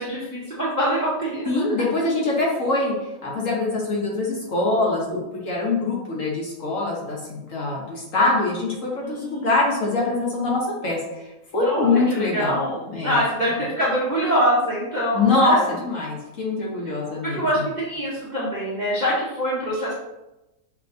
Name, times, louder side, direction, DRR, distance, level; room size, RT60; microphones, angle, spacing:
voice 1, 0.0-1.7 9.0-9.5 11.6-15.6 17.2-19.9, equal, 35° right, -8 dB, 0.7 m, -24 dB
voice 2, 1.5-2.9 3.2-11.0 11.5-12.6 12.9-13.2 13.5-13.6 15.1-15.5 15.8-17.6, left 3 dB, 55° left, -3 dB, 1.2 m, -23 dB
5.7 x 2.9 x 2.6 m, 0.98 s
omnidirectional pair, 1.8 m